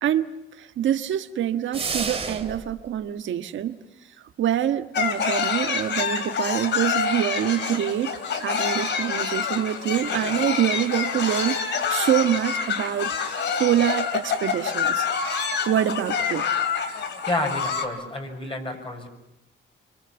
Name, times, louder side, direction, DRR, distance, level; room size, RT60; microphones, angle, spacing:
voice 1, 0.0-3.7 4.4-15.1 15.6-16.4, right 10 dB, 70° right, 1.5 m, -25 dB
sound 1, 1.7-2.7, right 5 dB, 30° right, 2.4 m, -30 dB
sound 2, 4.9-17.9, left 6 dB, 60° left, 2.9 m, -27 dB
voice 2, 17.3-19.1, left 2 dB, 25° left, 6.1 m, -29 dB
25.5 x 25.5 x 7.1 m
cardioid pair, 110°, 21 cm